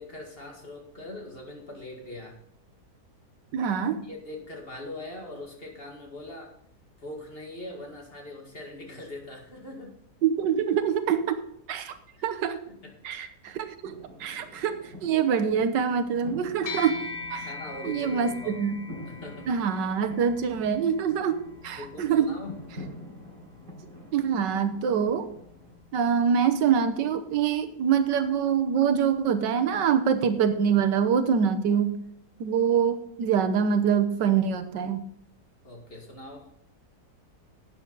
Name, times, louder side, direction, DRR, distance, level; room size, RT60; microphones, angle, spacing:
voice 1, 0.0-2.4 4.0-6.5 7.0-10.0 12.2-12.3 12.7-12.9 17.4-18.5 19.1-19.5 21.7-22.6 35.6-36.5, left 2 dB, 35° left, 0 dB, 2.2 m, -41 dB
voice 2, 3.5-4.1 10.2-11.4 11.7-11.9 12.2-12.6 13.0-13.9 14.2-14.7 15.0-17.0 17.3-17.5 17.8-18.8 19.5-21.4 21.6-22.4 24.1-25.3 25.9-32.0 32.4-35.0, right 7 dB, 90° right, 9 dB, 1.6 m, -25 dB
sound 1, 13.8-25.8, left 1 dB, 55° right, 4.4 m, -47 dB
sound 2, 16.7-26.3, left 4 dB, 80° left, 2.1 m, -43 dB
11.5 x 8.6 x 4.0 m, 0.70 s
omnidirectional pair, 1.8 m